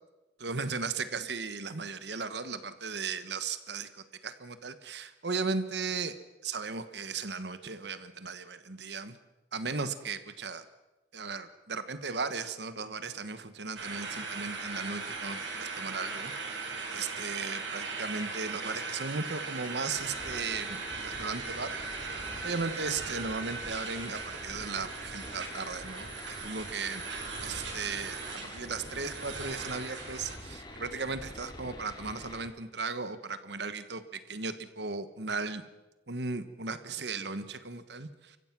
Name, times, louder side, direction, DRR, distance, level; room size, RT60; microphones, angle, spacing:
voice 1, 0.4-6.2 6.4-9.2 9.5-10.6 11.1-21.7 22.4-27.0 27.4-35.6 36.1-38.4, right 4 dB, 65° right, 11 dB, 1.3 m, -36 dB
sound 1, 13.8-30.4, right 4 dB, 80° right, 5.0 m, -39 dB
sound 2, 19.9-32.5, left 1 dB, 25° left, 2.5 m, -46 dB
29.5 x 15.0 x 6.1 m, 1.1 s
head